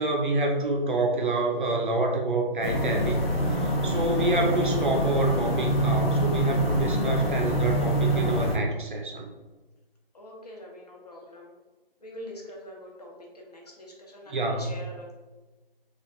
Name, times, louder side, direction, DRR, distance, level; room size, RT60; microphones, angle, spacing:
voice 1, 0.0-3.2 3.5-9.3 14.3-14.7, right 2 dB, 55° right, 2 dB, 0.6 m, -27 dB
sound 1, 2.6-8.6, equal, 90° left, 0.7 m, -25 dB
voice 2, 10.1-11.5 12.0-15.2, left 1 dB, 45° left, -1 dB, 0.6 m, -44 dB
3.1 x 2.4 x 2.4 m, 1.2 s
figure-of-eight pair, 155°, 29 cm